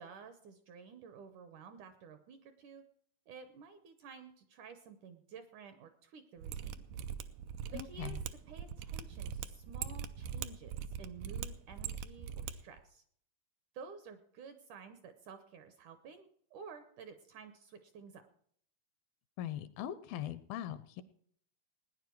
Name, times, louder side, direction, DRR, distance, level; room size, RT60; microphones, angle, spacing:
voice 1, 0.0-2.9 3.3-6.8 7.7-10.7 11.0-13.0 13.7-18.2, right 6 dB, 70° right, 9 dB, 2.0 m, -52 dB
Mechanisms, 6.4-12.5 12.8-12.9, right 8 dB, 90° right, 1.8 m, -41 dB
voice 2, 7.7-8.2 19.4-21.0, left 11 dB, 80° left, 14 dB, 2.3 m, -41 dB
19.0 x 10.0 x 4.6 m, 0.63 s
omnidirectional pair, 4.5 m